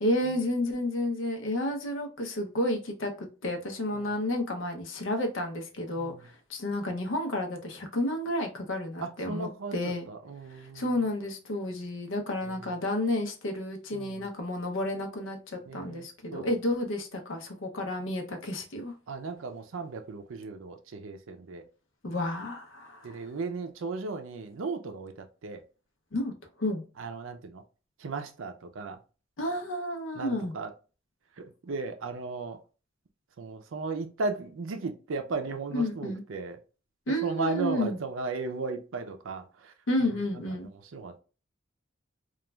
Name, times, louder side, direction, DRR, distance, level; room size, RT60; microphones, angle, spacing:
voice 1, 0.0-10.1 10.7-18.9 22.0-23.2 26.1-26.3 26.6-26.8 29.4-30.5 35.7-36.2 37.1-38.0 39.9-40.7, left 1 dB, 75° left, 0.6 m, -31 dB
voice 2, 9.0-10.8 12.4-12.5 13.9-14.2 15.7-16.5 19.1-21.6 23.0-25.1 25.4-25.6 27.0-27.6 28.0-29.0 30.1-30.7 31.4-32.6 33.4-36.6 37.1-39.7 40.9-41.2, right 3 dB, 85° right, 0.5 m, -36 dB
3.0 x 2.3 x 2.2 m
head